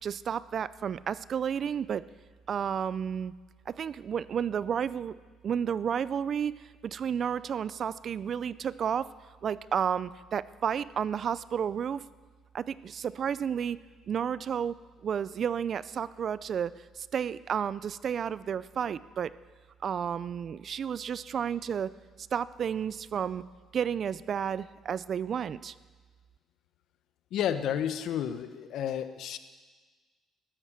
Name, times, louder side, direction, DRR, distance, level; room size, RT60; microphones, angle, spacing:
voice 1, 0.0-2.0 2.5-3.3 3.7-5.1 5.4-6.5 6.8-9.1 9.4-12.0 12.5-13.8 14.1-14.8 15.0-19.3 19.8-21.9 22.3-23.4 23.7-25.7, right 8 dB, 50° right, 18 dB, 0.4 m, -31 dB
voice 2, 27.3-29.4, left 9 dB, 70° left, 11 dB, 1.0 m, -31 dB
14.0 x 12.5 x 7.5 m, 1.4 s
cardioid pair, 100°, 0 cm